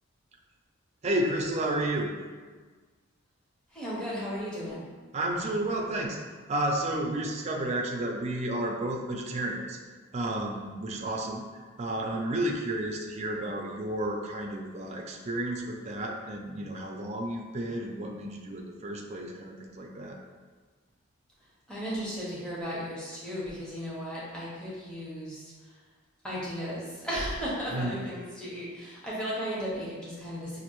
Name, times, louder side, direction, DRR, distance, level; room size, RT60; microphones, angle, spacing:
voice 1, 1.0-2.1 5.1-6.2 6.5-9.8 10.1-11.4 11.8-20.2 27.7-28.0, right 1 dB, 30° right, 0 dB, 0.4 m, -31 dB
voice 2, 3.7-4.9 21.7-25.7 26.2-30.6, equal, 5° left, -8 dB, 0.8 m, -35 dB
5.1 x 2.5 x 3.0 m, 1.4 s
head